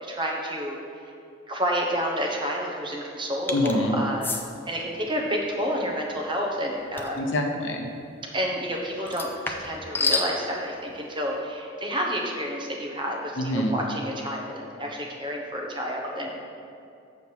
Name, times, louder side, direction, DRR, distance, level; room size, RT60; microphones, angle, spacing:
voice 1, 0.0-0.8 1.5-4.3 4.7-7.2 8.3-16.3, equal, 25° right, -1 dB, 1.0 m, -29 dB
voice 2, 3.5-4.0 7.2-7.9 13.4-13.8, left 1 dB, 70° left, 3 dB, 0.8 m, -25 dB
sound 1, 3.5-3.8 4.2-4.4 7.0-7.2 9.1-10.3, left 3 dB, 10° left, 0.5 m, -28 dB
7.4 x 6.9 x 4.6 m, 2.5 s
head